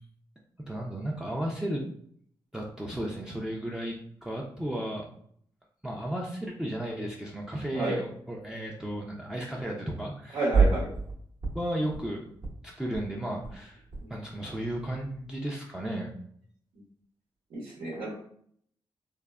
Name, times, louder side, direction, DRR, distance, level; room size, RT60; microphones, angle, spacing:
voice 1, 0.7-1.8 2.5-5.1 5.8-10.5 11.5-12.2 12.6-13.8 14.1-16.1, right 1 dB, 5° right, -3 dB, 0.4 m, -34 dB
voice 2, 10.3-10.9 14.0-14.1 17.5-18.1, right 2 dB, 80° right, -5 dB, 0.8 m, -30 dB
sound 1, 10.5-11.1 11.4-12.1 12.3-12.5 12.8-13.0 13.3-14.1 14.3-15.3, right 5 dB, 50° right, 0.7 m, -29 dB
3.3 x 2.0 x 2.2 m, 0.65 s
cardioid pair, 90°, 9 cm